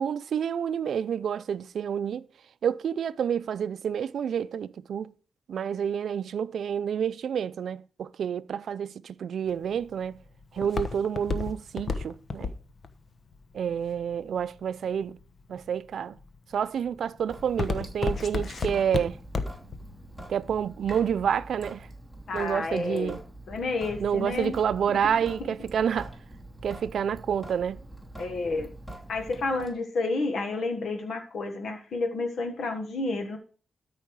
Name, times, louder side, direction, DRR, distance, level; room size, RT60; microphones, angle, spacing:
voice 1, 0.0-2.3 2.6-5.1 5.5-10.2 10.5-12.5 13.5-15.2 15.5-16.2 16.5-19.2 20.3-21.9 22.3-23.2 24.0-26.1 26.6-27.8, right 8 dB, 70° right, 0.5 m, -29 dB
Walk footsteps, 9.5-14.6 15.2-15.7 16.2-16.5 16.9-19.8 20.1-20.2, left 4 dB, 45° left, 1.0 m, -31 dB
Sink (filling or washing) / Drip, 17.3-29.7, right 1 dB, 10° left, 3.0 m, -45 dB
voice 2, 22.3-23.1 23.5-24.5 28.2-28.7 29.1-33.4, left 3 dB, 70° left, 1.6 m, -30 dB
13.0 x 5.5 x 4.8 m
cardioid pair, 100°, 0 cm